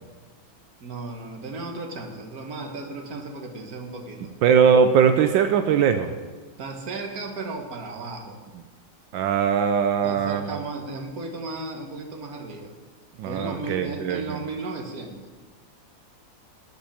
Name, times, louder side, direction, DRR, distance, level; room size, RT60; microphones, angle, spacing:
voice 1, 0.8-4.3 6.6-8.4 10.0-12.7 13.3-15.3, right 3 dB, 55° right, 3 dB, 1.8 m, -35 dB
voice 2, 4.4-6.1 9.1-10.4 13.2-14.2, right 7 dB, 85° right, 8 dB, 1.4 m, -20 dB
12.0 x 5.3 x 8.6 m, 1.3 s
omnidirectional pair, 2.0 m